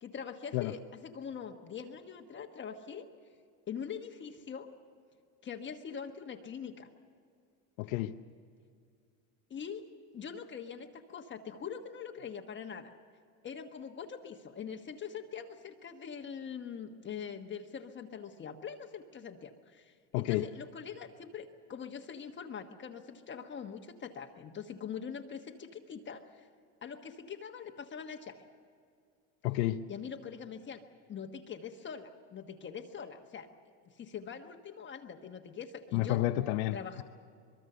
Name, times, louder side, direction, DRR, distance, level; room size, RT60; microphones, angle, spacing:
voice 1, 0.0-3.1 3.7-4.7 5.4-6.9 9.5-9.8 10.1-12.9 13.4-26.5 26.8-28.4 29.9-30.8 31.1-33.5 33.8-36.3 36.7-37.0, left 7 dB, 25° left, 1.3 m, -43 dB
voice 2, 7.8-8.1 20.1-20.5 29.4-29.8 35.9-36.8, left 16 dB, 75° left, 0.9 m, -30 dB
23.5 x 22.5 x 6.8 m
supercardioid pair, 130°, 41 cm